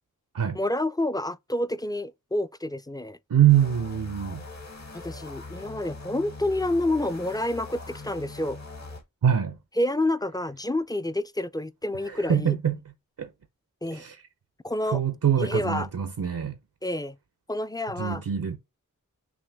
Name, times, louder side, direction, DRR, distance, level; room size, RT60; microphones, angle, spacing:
voice 1, 0.5-3.2 4.9-8.6 9.8-12.6 13.8-14.0 14.6-15.0 15.4-15.9 16.8-17.2 17.5-18.2, left 1 dB, 10° left, 0.3 m, -28 dB
voice 2, 3.3-4.4 9.2-9.6 12.0-12.9 13.2-13.3 13.9-14.2 14.9-16.6 18.0-18.6, right 9 dB, 85° right, 0.7 m, -24 dB
sound 1, 3.5-9.0, left 3 dB, 55° left, 1.4 m, -41 dB
6.1 x 2.2 x 3.3 m
wide cardioid pair, 50°, 32 cm